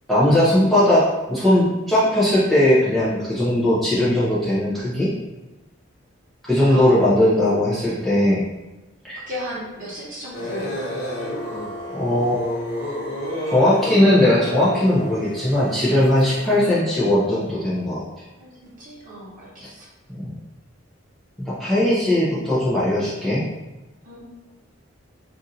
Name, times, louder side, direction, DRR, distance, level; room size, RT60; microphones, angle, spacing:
voice 1, 0.1-5.1 6.5-8.4 9.0-9.2 11.9-12.4 13.5-18.0 20.1-20.3 21.4-23.4, left 1 dB, ahead, -11 dB, 0.6 m, -19 dB
voice 2, 6.6-7.4 9.1-10.9 18.4-19.9 24.0-24.2, equal, 40° right, -7 dB, 1.0 m, -35 dB
sound 1, 10.3-16.7, left 1 dB, 60° left, 1.1 m, -30 dB
2.6 x 2.5 x 4.1 m, 1.1 s
head